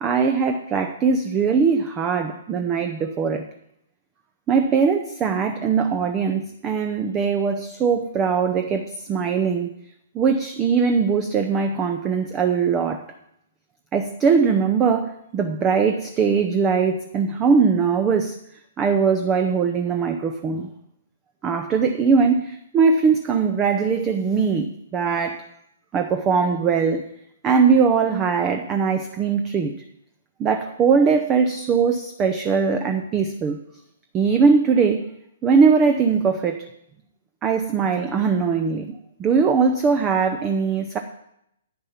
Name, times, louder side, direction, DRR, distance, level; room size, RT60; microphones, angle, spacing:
voice 1, 0.0-3.4 4.5-9.7 10.1-13.0 13.9-18.3 18.8-20.7 21.4-25.4 25.9-27.0 27.4-29.7 30.4-33.6 34.1-35.1 35.4-36.7 37.4-38.9 39.2-41.0, right 5 dB, 15° right, 6 dB, 0.6 m, -20 dB
10.5 x 9.2 x 5.8 m, 0.79 s
hypercardioid pair, 165°, 0 cm